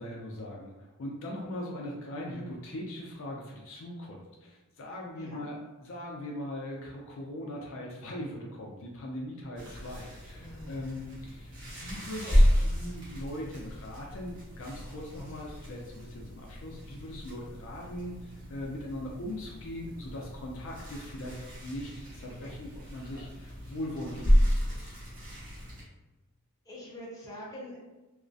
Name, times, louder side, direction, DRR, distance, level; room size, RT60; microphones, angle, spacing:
voice 1, 0.0-24.9, left 1 dB, 60° left, -1 dB, 0.4 m, -40 dB
voice 2, 5.1-5.5 10.4-10.9 12.2-12.4 26.6-27.8, equal, 15° left, -6 dB, 0.6 m, -44 dB
sound 1, 9.5-25.8, equal, 60° right, 1.0 m, -31 dB
2.3 x 2.1 x 2.5 m, 1.1 s
head